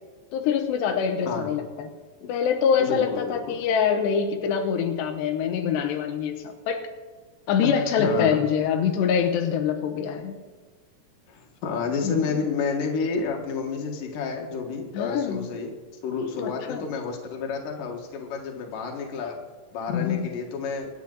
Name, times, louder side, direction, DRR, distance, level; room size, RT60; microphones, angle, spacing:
voice 1, 0.3-1.9 2.3-6.8 7.5-10.4 12.0-12.4 14.9-15.5 16.3-16.9 19.9-20.2, left 7 dB, 90° left, 5 dB, 3.3 m, -25 dB
voice 2, 1.3-1.6 2.8-3.6 7.6-8.4 11.3-15.7 16.0-19.4 19.7-20.9, left 5 dB, 60° left, 1 dB, 3.1 m, -30 dB
24.0 x 10.0 x 4.0 m, 1.3 s
omnidirectional pair, 4.8 m